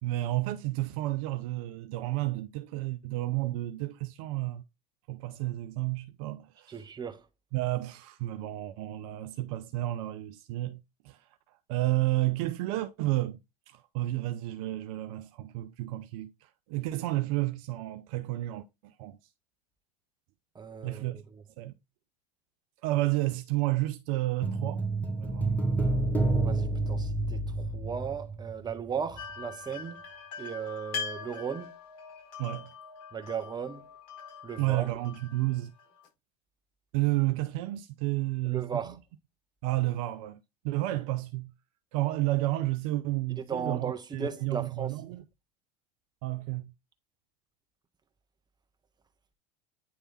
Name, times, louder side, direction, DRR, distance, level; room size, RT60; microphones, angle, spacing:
voice 1, 0.0-4.6 5.1-6.8 7.5-11.2 11.7-13.4 13.7-19.2 20.8-21.2 21.6-21.7 22.8-24.8 25.2-25.5 32.4-32.7 34.6-35.7 36.9-38.7 39.6-41.5 41.9-45.2 46.2-46.7, right 17 dB, 55° right, 0.6 m, -31 dB
voice 2, 6.7-7.2 20.5-21.4 26.4-30.0 30.4-31.7 33.1-33.9 34.4-34.9 38.4-39.0 43.4-44.9, right 6 dB, 20° right, 1.3 m, -36 dB
sound 1, 24.4-28.9 29.1-29.2, right 2 dB, 5° left, 1.6 m, -29 dB
sound 2, 29.2-36.1, left 6 dB, 60° left, 4.6 m, -42 dB
9.4 x 3.4 x 4.1 m
hypercardioid pair, 80°, 21 cm